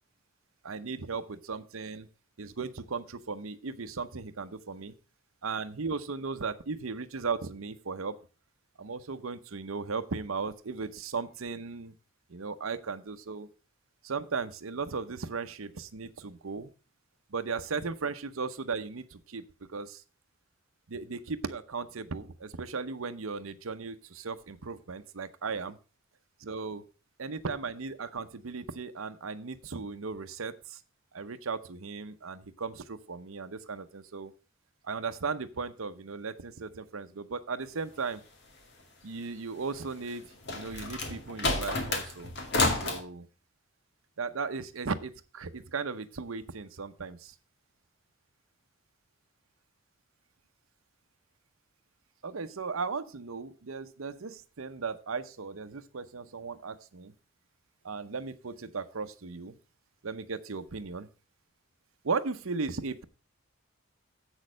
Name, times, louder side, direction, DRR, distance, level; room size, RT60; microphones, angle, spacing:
voice 1, 0.6-2.1 2.4-5.0 5.4-8.2 8.8-11.9 12.3-13.5 14.0-16.7 17.3-20.0 20.9-25.8 26.4-26.8 27.2-30.8 31.1-34.3 34.8-38.2 39.0-40.3 40.5-42.3 42.7-43.3 44.2-47.3 52.2-57.1 57.8-59.6 60.0-61.0 62.0-63.0, right 4 dB, 80° right, 10 dB, 0.8 m, -36 dB
sound 1, 40.1-43.0, left 2 dB, 55° left, 2.2 m, -30 dB
7.9 x 6.4 x 6.2 m, 0.36 s
head